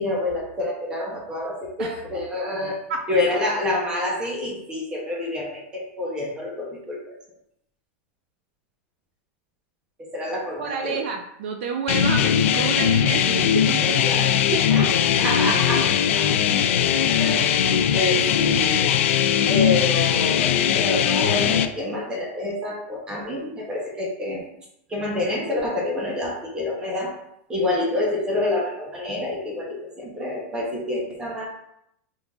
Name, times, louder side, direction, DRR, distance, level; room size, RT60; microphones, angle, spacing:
voice 1, 0.0-2.8 3.1-7.2 10.0-11.0 13.8-14.3 14.7-14.9 15.2-16.3 17.1-17.7 17.9-18.9 19.5-24.4 24.9-27.1 27.5-31.5, left 2 dB, 10° right, -2 dB, 1.1 m, -27 dB
voice 2, 10.6-14.9 17.2-17.3, right 6 dB, 55° right, 4 dB, 0.4 m, -30 dB
sound 1, 11.9-21.7, left 9 dB, 65° left, 0.4 m, -20 dB
3.9 x 3.8 x 3.5 m, 0.77 s
supercardioid pair, 175°, 7 cm